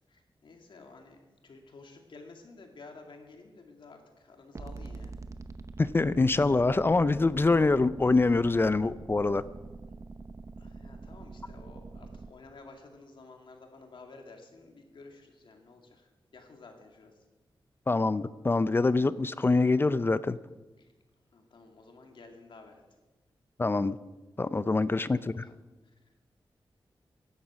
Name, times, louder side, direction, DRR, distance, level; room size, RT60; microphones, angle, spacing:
voice 1, 0.0-5.2 10.6-17.2 20.8-20.9 21.3-22.8 25.1-25.6 25.8-26.2, left 3 dB, 70° left, 3 dB, 2.3 m, -52 dB
sound 1, 4.6-12.3, right 3 dB, 35° right, 0.8 m, -44 dB
voice 2, 5.8-9.4 17.9-20.4 23.6-24.0 24.4-25.5, left 3 dB, 25° left, 16 dB, 0.5 m, -25 dB
15.0 x 10.5 x 6.2 m, 1.2 s
wide cardioid pair, 130°, 9 cm